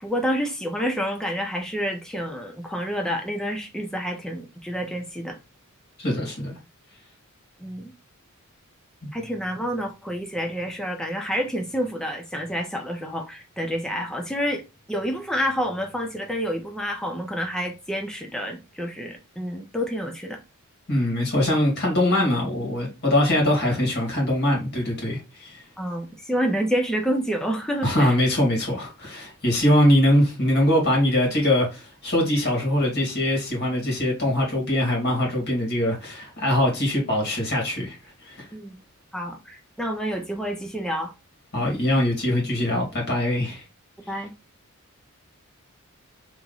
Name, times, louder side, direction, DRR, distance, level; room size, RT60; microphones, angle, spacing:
voice 1, 0.0-5.4 7.6-7.9 9.1-14.6 14.9-20.4 25.8-28.2 38.5-38.8 39.1-41.1 44.1-44.3, equal, 5° left, 0.6 m, -28 dB
voice 2, 6.0-6.5 20.9-25.6 27.8-38.0 38.2-38.5 41.5-43.6, left 1 dB, 50° left, 2.2 m, -22 dB
3.5 x 3.0 x 3.9 m
head